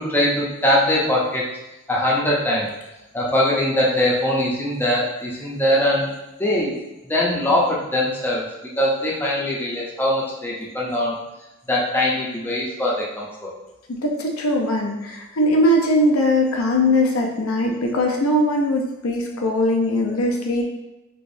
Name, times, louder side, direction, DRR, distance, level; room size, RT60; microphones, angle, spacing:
voice 1, 0.0-1.4 1.9-2.7 3.1-6.1 6.4-6.7 7.1-8.4 8.8-11.2 11.7-13.5, left 1 dB, 10° left, -5 dB, 0.6 m, -21 dB
voice 2, 13.9-20.6, left 1 dB, 75° left, 1 dB, 0.6 m, -20 dB
3.4 x 3.0 x 2.6 m, 0.97 s
head